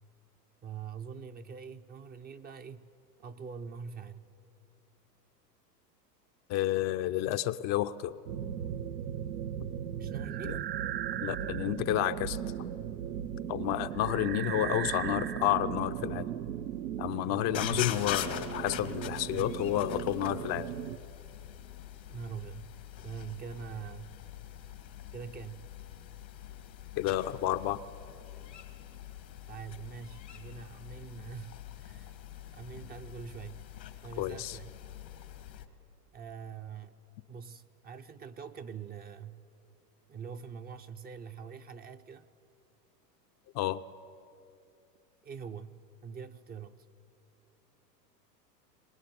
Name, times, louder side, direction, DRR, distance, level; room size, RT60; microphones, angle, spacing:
voice 1, 0.6-2.9 3.2-4.3 10.0-10.6 17.5-17.9 22.1-22.7 23.0-24.2 25.1-25.7 29.5-32.2 32.5-33.7 34.0-34.7 36.1-37.0 37.3-39.5 40.1-42.3 45.2-46.9, right 6 dB, 20° right, 8 dB, 0.5 m, -44 dB
voice 2, 6.5-8.2 10.4-10.6 11.2-12.5 13.5-16.3 17.0-20.7 27.0-27.8 34.2-34.6 43.5-43.8, left 13 dB, 35° left, 9 dB, 0.5 m, -30 dB
sound 1, 8.3-21.0, right 9 dB, 85° right, 1.0 m, -37 dB
sound 2, 17.4-35.7, left 11 dB, 90° left, 2.1 m, -43 dB
23.5 x 19.5 x 9.4 m, 2.7 s
hypercardioid pair, 110°, 49 cm